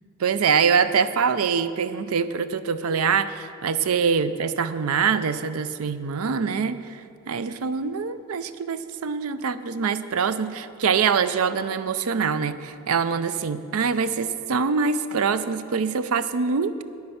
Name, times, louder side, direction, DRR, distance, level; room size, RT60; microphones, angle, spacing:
voice 1, 0.2-7.0 7.3-16.8, right 6 dB, 80° right, 13 dB, 0.5 m, -24 dB
9.8 x 9.5 x 5.8 m, 2.5 s
head